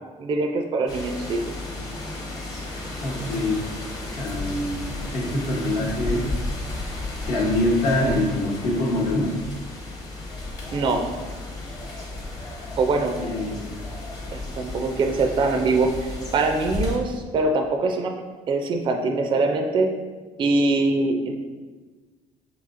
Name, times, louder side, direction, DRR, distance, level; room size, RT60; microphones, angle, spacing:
voice 1, 0.2-1.4 10.7-11.2 12.8-13.2 14.3-15.9 16.3-18.1 18.5-19.9 20.4-21.3, right 3 dB, 35° right, 4 dB, 0.4 m, -23 dB
sound 1, 0.9-17.0, left 2 dB, 25° left, 0.9 m, -33 dB
voice 2, 3.0-3.6 4.1-6.4 7.2-9.4 13.2-13.7, left 1 dB, 60° left, -2 dB, 1.0 m, -25 dB
5.5 x 2.8 x 2.5 m, 1.3 s
cardioid pair, 130°, 14 cm